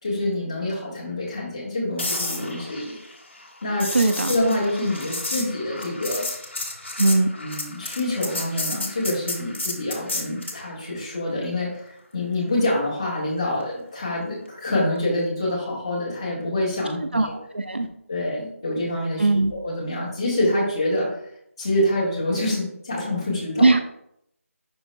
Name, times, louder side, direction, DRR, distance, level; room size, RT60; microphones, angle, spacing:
voice 1, 0.0-2.9 3.6-6.2 7.4-11.8 12.1-17.3 18.1-21.1 21.6-23.7, left 1 dB, 20° left, -6 dB, 1.6 m, -26 dB
sound 1, 2.0-10.6 14.8-15.1, left 2 dB, 55° left, 1.7 m, -32 dB
voice 2, 3.9-4.3 7.0-7.3 17.1-17.3 17.5-17.9 19.2-19.5 23.6-23.8, right 2 dB, 50° right, 8 dB, 0.5 m, -19 dB
10.5 x 4.9 x 2.2 m, 0.75 s
figure-of-eight pair, 180°, 8 cm